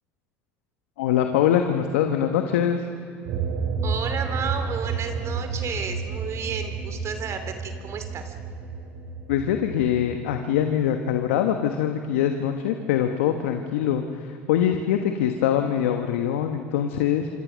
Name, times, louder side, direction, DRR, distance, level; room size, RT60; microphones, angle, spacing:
voice 1, 1.0-2.8 9.3-17.3, left 9 dB, 80° left, 5 dB, 1.2 m, -23 dB
sound 1, 3.3-10.2, right 5 dB, 70° right, 4.3 m, -31 dB
voice 2, 3.8-8.3, right 6 dB, 45° right, 7 dB, 2.7 m, -32 dB
27.0 x 25.5 x 6.3 m, 2.4 s
hypercardioid pair, 75°, 7 cm